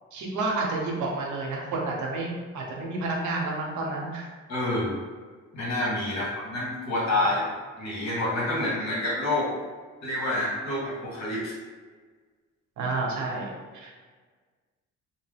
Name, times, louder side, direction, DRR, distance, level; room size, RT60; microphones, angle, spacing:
voice 1, 0.1-4.3 12.8-13.5 13.8-13.9, right 3 dB, 75° right, -1 dB, 0.8 m, -30 dB
voice 2, 4.5-5.0 5.5-7.4 7.8-9.5 10.0-11.5, left 1 dB, 60° left, -6 dB, 1.3 m, -28 dB
2.8 x 2.0 x 3.3 m, 1.5 s
cardioid pair, 90°, 30 cm